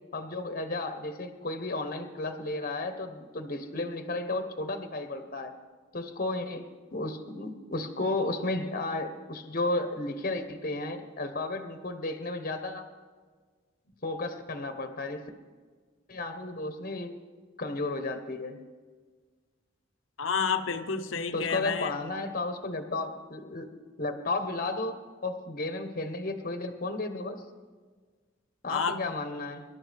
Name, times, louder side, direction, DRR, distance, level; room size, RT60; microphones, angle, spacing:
voice 1, 0.1-5.5 5.9-12.9 14.0-15.3 16.1-17.2 17.6-18.6 21.3-23.7 24.0-27.4 28.6-29.6, left 2 dB, 45° left, 7 dB, 1.1 m, -33 dB
voice 2, 20.2-21.9 28.7-29.0, left 6 dB, 85° left, 8 dB, 0.9 m, -30 dB
24.5 x 11.5 x 3.5 m, 1.5 s
head